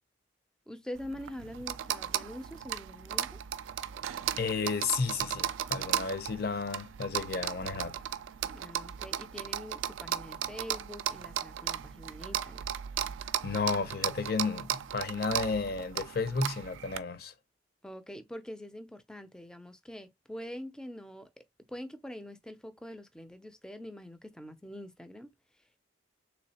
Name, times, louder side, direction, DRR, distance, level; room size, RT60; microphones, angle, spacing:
voice 1, 0.7-3.4 8.5-12.7 17.8-25.3, equal, 5° left, 0.4 m, -44 dB
sound 1, 1.0-17.0, right 10 dB, 85° right, 0.4 m, -36 dB
voice 2, 4.4-7.9 13.4-17.3, left 4 dB, 50° left, 0.6 m, -32 dB
3.6 x 3.0 x 2.8 m
head